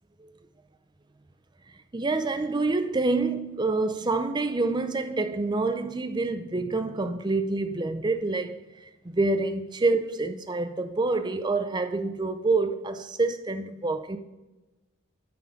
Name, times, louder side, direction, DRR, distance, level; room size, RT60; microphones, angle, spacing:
voice 1, 1.9-14.2, right 3 dB, 20° right, 0.5 m, -27 dB
9.3 x 3.8 x 5.9 m
head